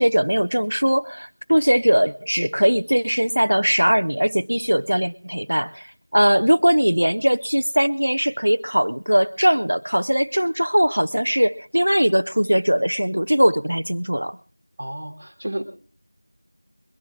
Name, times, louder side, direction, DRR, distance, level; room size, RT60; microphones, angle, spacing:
voice 1, 0.0-5.9 6.1-14.4, equal, 60° right, 11 dB, 0.6 m, -20 dB
voice 2, 14.8-15.6, right 1 dB, 10° right, -7 dB, 1.5 m, -31 dB
23.0 x 10.5 x 3.7 m, 0.37 s
figure-of-eight pair, 180°, 0 cm